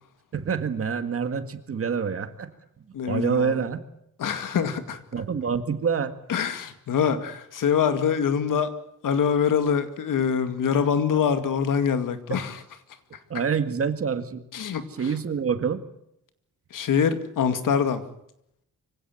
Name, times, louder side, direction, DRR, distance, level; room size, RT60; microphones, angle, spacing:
voice 1, 0.3-2.5 3.1-3.8 5.1-6.1 13.3-14.4 14.9-15.8, right 6 dB, 45° right, 1.8 m, -26 dB
voice 2, 2.9-3.6 4.2-5.0 6.3-8.7 9.0-12.6 14.5-14.8 16.7-18.0, left 7 dB, 85° left, 2.3 m, -24 dB
25.0 x 16.5 x 9.3 m
wide cardioid pair, 170°, 31 cm